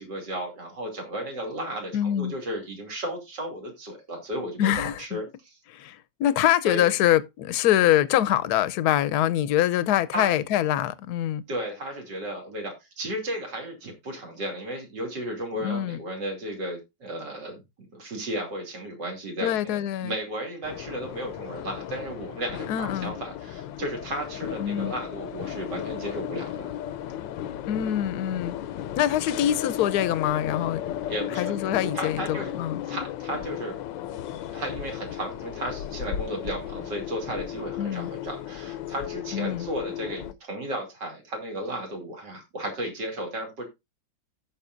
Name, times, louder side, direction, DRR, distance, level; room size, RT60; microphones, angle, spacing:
voice 1, 0.0-5.2 6.6-6.9 10.1-10.3 11.5-17.6 17.9-26.6 31.1-31.5 31.9-32.5 32.8-33.8 34.5-43.6, right 1 dB, 70° right, 3.3 m, -34 dB
voice 2, 1.9-2.3 4.6-5.2 5.7-11.4 15.5-16.0 19.4-20.1 22.7-23.1 24.6-24.9 27.7-28.5 29.0-30.8 31.3-32.8 37.8-38.1 39.3-39.7, left 12 dB, 70° left, 1.1 m, -24 dB
sound 1, 20.6-40.3, left 11 dB, 85° left, 1.3 m, -35 dB
16.0 x 6.0 x 2.5 m
omnidirectional pair, 1.9 m